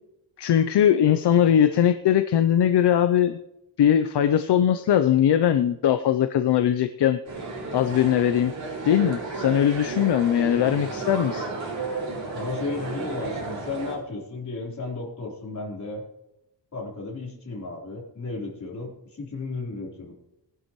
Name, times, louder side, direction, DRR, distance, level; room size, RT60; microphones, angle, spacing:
voice 1, 0.4-3.4 3.8-7.2 7.7-8.5 8.8-11.5, left 10 dB, 70° left, 9 dB, 0.6 m, -20 dB
sound 1, 7.2-13.9, right 3 dB, 45° right, 5.4 m, -33 dB
voice 2, 12.3-16.0 16.7-20.1, left 3 dB, 40° left, -2 dB, 3.8 m, -34 dB
20.0 x 11.0 x 3.1 m, 0.88 s
wide cardioid pair, 175°, 42 cm